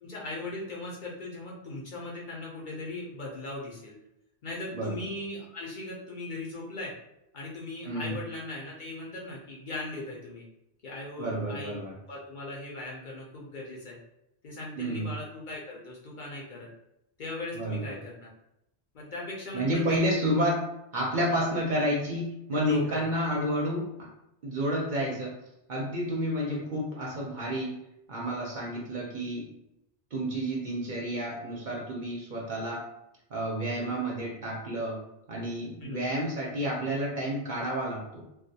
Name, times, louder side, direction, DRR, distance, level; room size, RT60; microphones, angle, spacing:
voice 1, 0.0-3.9 4.4-6.9 7.3-10.4 10.8-11.8 12.1-14.0 14.4-16.7 17.2-18.3 18.9-20.0 22.7-23.0 35.8-36.1, left 2 dB, 55° left, -3 dB, 0.6 m, -39 dB
voice 2, 7.8-8.2 11.2-11.9 14.8-15.1 17.5-17.9 19.5-20.6 20.9-24.1 24.4-25.4 25.7-27.8 28.1-29.5 30.1-32.9 33.3-35.0 35.3-38.2, equal, 55° right, -2 dB, 0.7 m, -30 dB
2.3 x 2.2 x 2.7 m, 0.84 s
omnidirectional pair, 1.1 m